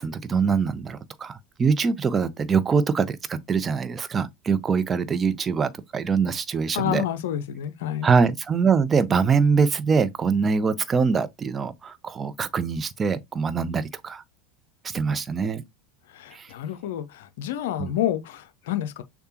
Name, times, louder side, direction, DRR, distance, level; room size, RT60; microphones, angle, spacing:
voice 1, 0.0-7.0 8.0-14.2 14.8-15.6 16.3-16.5 17.8-17.9, right 5 dB, 25° right, 0.6 m, -23 dB
voice 2, 6.7-8.1 16.1-19.0, left 11 dB, 65° left, 0.5 m, -29 dB
6.6 x 2.2 x 2.9 m
figure-of-eight pair, 80°, 0 cm